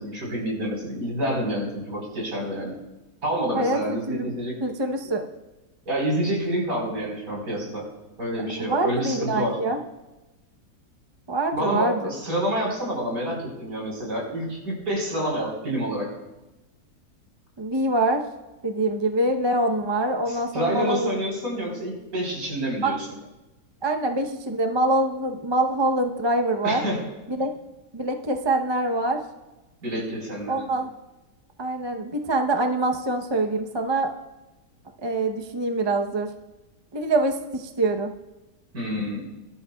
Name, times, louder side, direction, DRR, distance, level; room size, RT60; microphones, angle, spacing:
voice 1, 0.0-2.8 3.2-4.6 5.9-7.9 8.2-9.6 11.5-16.1 20.2-23.1 26.6-27.0 29.8-30.6 38.7-39.2, right 1 dB, 60° right, -2 dB, 4.7 m, -28 dB
voice 2, 3.5-4.3 4.6-5.3 8.6-9.8 11.3-12.1 17.6-18.2 18.6-21.2 22.8-22.9 23.8-26.8 27.3-27.5 27.9-29.2 30.5-30.9 31.6-34.1 35.0-36.3 36.9-38.1, right 2 dB, 30° right, 4 dB, 0.5 m, -24 dB
21.5 x 12.0 x 2.3 m, 1.0 s
omnidirectional pair, 1.7 m